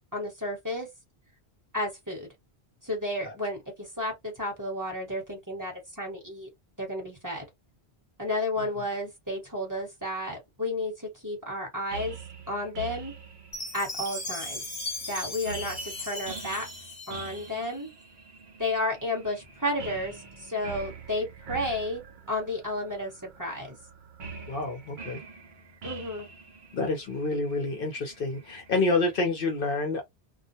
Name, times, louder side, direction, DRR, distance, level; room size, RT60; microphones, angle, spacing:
voice 1, 0.1-0.9 1.7-2.3 2.8-6.5 6.8-7.4 8.2-12.2 12.5-13.1 13.7-14.6 15.0-16.7 17.1-17.9 18.6-23.8 25.8-26.3, left 1 dB, 20° right, 1.1 m, -32 dB
sound 1, 11.9-29.2, right 5 dB, 50° right, 0.8 m, -45 dB
Chime, 13.5-17.7, left 2 dB, 25° left, 1.1 m, -37 dB
voice 2, 24.5-25.2 26.7-30.0, left 3 dB, 60° left, 0.8 m, -28 dB
2.4 x 2.1 x 2.7 m
omnidirectional pair, 1.1 m